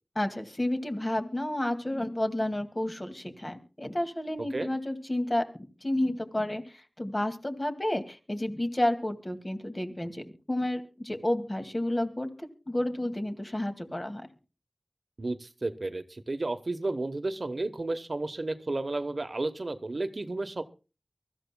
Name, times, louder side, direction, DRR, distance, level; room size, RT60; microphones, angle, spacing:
voice 1, 0.2-5.4 5.8-14.2, left 1 dB, 30° left, 6 dB, 2.1 m, -31 dB
voice 2, 4.4-4.7 15.2-20.6, right 2 dB, 65° right, 11 dB, 1.0 m, -32 dB
23.5 x 14.0 x 2.2 m, 0.33 s
wide cardioid pair, 50°, 0 cm